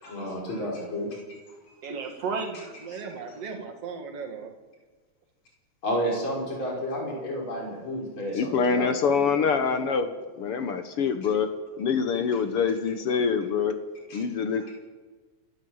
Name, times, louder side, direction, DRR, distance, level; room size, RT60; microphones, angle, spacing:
voice 1, 0.0-1.2 1.7-1.8 2.5-3.0 3.3-3.4 5.8-9.5 14.1-14.2 14.5-14.7, equal, 40° left, -1 dB, 6.1 m, -32 dB
voice 2, 1.8-4.5, right 5 dB, 55° right, 2 dB, 3.2 m, -35 dB
voice 3, 8.3-10.1 10.4-11.5 11.8-13.7 14.1-14.7, left 6 dB, 60° left, 9 dB, 1.8 m, -25 dB
27.5 x 13.5 x 7.9 m, 1.3 s
omnidirectional pair, 3.3 m